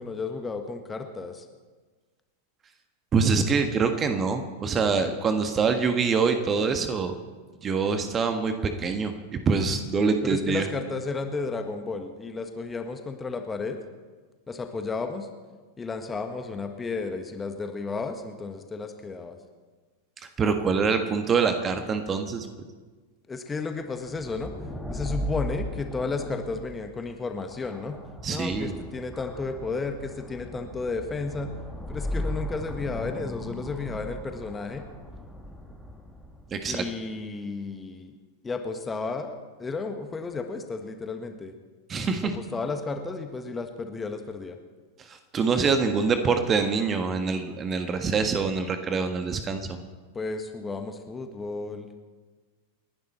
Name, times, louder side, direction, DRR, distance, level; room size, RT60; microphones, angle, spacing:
voice 1, 0.0-1.4 10.2-13.8 14.5-15.3 15.8-19.4 23.3-24.5 24.9-28.0 28.3-31.5 31.9-34.9 36.7-38.2 38.4-41.5 42.3-44.6 50.1-51.9, left 4 dB, 15° left, 6 dB, 1.6 m, -33 dB
voice 2, 3.1-7.1 7.6-8.5 8.8-9.1 9.4-10.6 20.4-22.5 28.2-28.8 36.5-36.8 41.9-42.3 45.1-49.8, right 5 dB, 25° right, 7 dB, 1.5 m, -25 dB
sound 1, 24.1-36.6, equal, 5° right, 1.9 m, -37 dB
29.0 x 11.5 x 4.4 m, 1.4 s
figure-of-eight pair, 90°, 0 cm